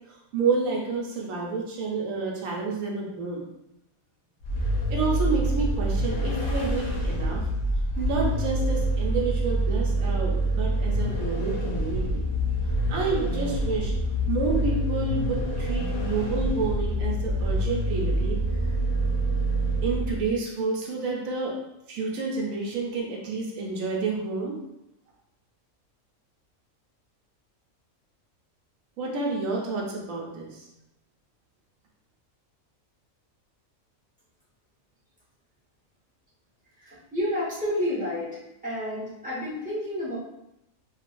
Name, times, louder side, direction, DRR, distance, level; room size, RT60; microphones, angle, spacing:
voice 1, 0.3-3.4 4.9-7.4 8.0-12.2 12.9-13.9 14.3-18.4 19.8-21.5 21.9-24.6 29.0-30.7, right 4 dB, 80° right, -2 dB, 1.1 m, -29 dB
Vehicle, 4.4-20.4, right 1 dB, 60° left, 1.0 m, -26 dB
voice 2, 36.7-38.4 38.6-40.2, left 1 dB, 5° right, -10 dB, 1.2 m, -30 dB
3.2 x 2.7 x 2.5 m, 0.85 s
omnidirectional pair, 1.4 m